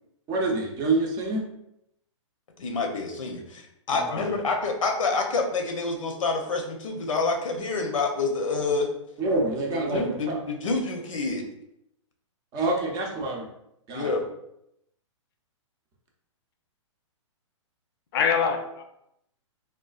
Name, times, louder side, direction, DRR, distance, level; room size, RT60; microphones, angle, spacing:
voice 1, 0.3-1.4 3.9-4.3 9.2-10.4 12.5-13.5 13.9-14.1, right 2 dB, 25° right, 0 dB, 0.5 m, -27 dB
voice 2, 2.6-8.9 9.7-11.5 13.9-14.2, left 3 dB, 85° left, 3 dB, 0.7 m, -27 dB
voice 3, 4.1-4.4 18.1-18.8, left 6 dB, 50° left, 5 dB, 0.5 m, -25 dB
3.6 x 2.3 x 2.4 m, 0.80 s
hypercardioid pair, 140°, 16 cm